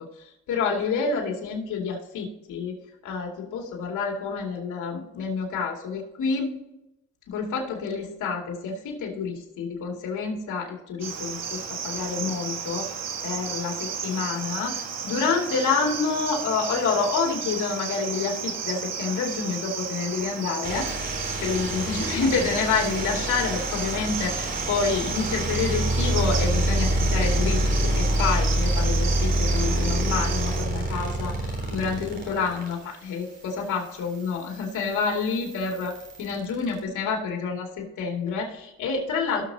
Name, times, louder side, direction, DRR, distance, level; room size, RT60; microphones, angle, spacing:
voice 1, 0.2-2.8 3.0-6.6 7.3-20.9 21.4-39.4, left 5 dB, 75° left, -1 dB, 2.6 m, -28 dB
Cricket, 11.0-30.7, right 6 dB, 60° right, 1.7 m, -33 dB
sound 1, 20.6-36.8, right 1 dB, 35° right, 3.9 m, -27 dB
17.5 x 6.6 x 2.8 m, 0.92 s
cardioid pair, 90°, 30 cm